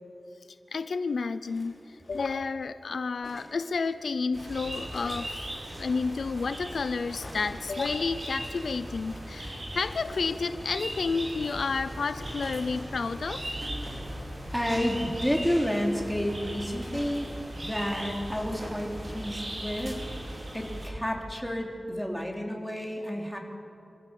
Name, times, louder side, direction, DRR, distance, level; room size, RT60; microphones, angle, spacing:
voice 1, 0.7-13.5, left 4 dB, 80° left, 12 dB, 0.6 m, -31 dB
sound 1, 1.4-2.5 3.2-4.0 4.9-6.0 7.2-8.9 9.2-9.3 9.5-9.6 10.0-11.2 12.2-13.1 13.8-14.8 15.5-15.6, left 1 dB, 45° left, 5.2 m, -49 dB
sound 2, 4.3-20.9, right 1 dB, 50° right, 5.1 m, -38 dB
voice 2, 14.5-17.3 17.6-20.0 20.5-23.4, equal, ahead, 0 dB, 3.2 m, -30 dB
26.0 x 15.0 x 7.0 m, 2.7 s
wide cardioid pair, 95°, 0 cm